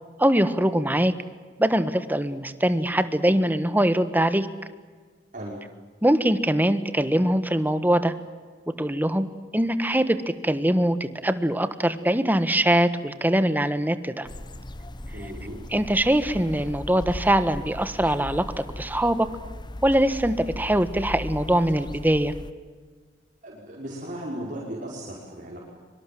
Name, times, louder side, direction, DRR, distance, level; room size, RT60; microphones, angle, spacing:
voice 1, 0.2-1.1 1.6-4.5 6.0-8.1 8.8-9.3 9.5-10.2 10.4-14.3 15.7-19.3 19.8-22.3, right 1 dB, 10° right, 11 dB, 1.4 m, -22 dB
sound 1, 14.2-22.5, left 1 dB, 25° left, 0.9 m, -38 dB
voice 2, 15.1-15.6 23.4-25.6, right 1 dB, 50° right, -4 dB, 5.6 m, -36 dB
24.5 x 24.5 x 7.8 m, 1.5 s
head